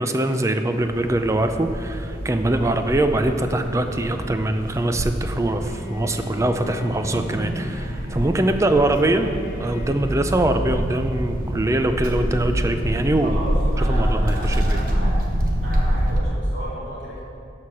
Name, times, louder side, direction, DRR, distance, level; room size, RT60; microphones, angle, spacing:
voice 1, 0.0-9.3 9.6-13.4 13.8-14.8, right 1 dB, 15° right, 7 dB, 0.4 m, -23 dB
sound 1, 0.7-16.2, equal, 50° right, 1.1 m, -26 dB
Bowed string instrument, 5.6-10.5, left 1 dB, 45° left, 1.4 m, -40 dB
voice 2, 13.2-15.2 15.6-17.2, right 1 dB, 75° right, -7 dB, 2.4 m, -34 dB
13.0 x 4.8 x 5.8 m, 2.6 s
head